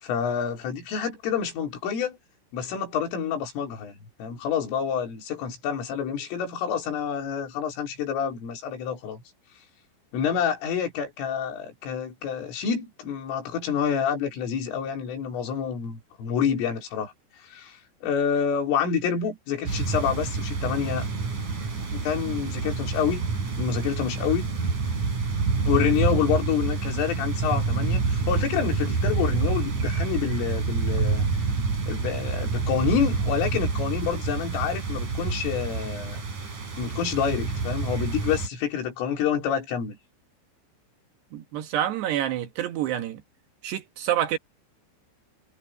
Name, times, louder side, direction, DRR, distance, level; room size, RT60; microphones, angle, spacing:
voice 1, 0.0-2.2 2.5-9.2 10.1-17.1 17.5-21.1 21.9-23.3 23.6-24.5 25.7-31.3 31.9-36.2 36.8-40.0, left 7 dB, 85° left, 6.3 m, -28 dB
sound 1, 19.7-38.5, right 4 dB, 40° right, 6.3 m, -27 dB
voice 2, 41.3-43.2 43.6-44.4, right 12 dB, 70° right, 3.0 m, -27 dB
omnidirectional pair, 5.7 m